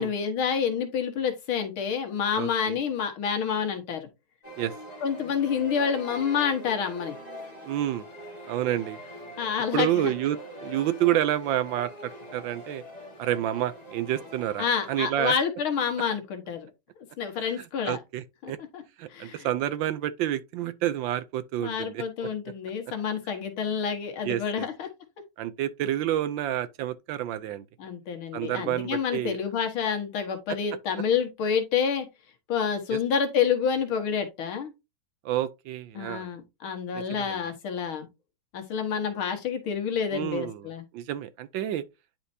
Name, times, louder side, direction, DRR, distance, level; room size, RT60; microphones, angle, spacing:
voice 1, 0.0-4.1 5.0-7.2 9.4-10.1 14.6-16.7 17.2-18.0 18.4-18.8 19.1-19.5 21.6-24.9 27.8-32.1 32.5-34.7 36.0-38.1 38.5-40.8, left 7 dB, 75° left, 2.2 m, -28 dB
voice 2, 2.3-2.8 4.6-4.7 7.6-8.1 8.5-9.0 9.7-12.8 13.2-15.3 17.4-18.6 19.0-22.0 24.2-24.7 25.4-27.6 28.3-29.4 32.9-33.0 35.2-36.3 36.9-37.4 40.1-41.8, right 12 dB, 75° right, 1.2 m, -29 dB
sound 1, 4.4-15.0, equal, 20° left, 1.5 m, -43 dB
10.5 x 4.3 x 2.7 m
omnidirectional pair, 2.3 m